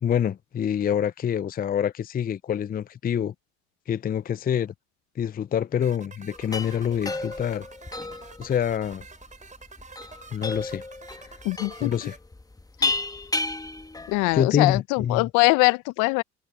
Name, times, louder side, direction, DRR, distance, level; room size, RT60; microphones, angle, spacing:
voice 1, 0.0-3.3 3.9-4.7 5.2-7.7 8.4-9.0 10.3-10.8 11.2-11.4 11.8-12.2 14.3-15.3, left 9 dB, 30° left, 0.6 m, -26 dB
sound 1, 5.8-12.2, right 4 dB, 25° right, 4.5 m, -47 dB
sound 2, 6.3-14.4, left 3 dB, 10° left, 1.4 m, -33 dB
voice 2, 11.4-11.9 12.8-12.9 14.1-16.2, left 26 dB, 65° left, 1.0 m, -22 dB
hypercardioid pair, 65°, 32 cm